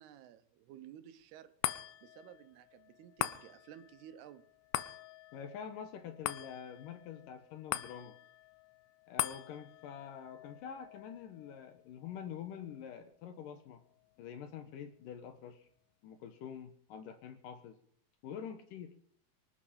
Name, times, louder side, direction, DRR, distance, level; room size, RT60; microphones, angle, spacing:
voice 1, 0.0-1.5 2.0-4.4, right 10 dB, 85° right, 10 dB, 2.9 m, -54 dB
sound 1, 1.6-14.2 14.7-14.8, left 14 dB, 90° left, 2.8 m, -43 dB
voice 2, 5.3-8.2 9.1-13.8 14.2-15.7 16.0-17.8 18.2-18.9, left 8 dB, 70° left, 8 dB, 2.3 m, -46 dB
24.0 x 8.5 x 5.0 m, 0.65 s
omnidirectional pair, 4.6 m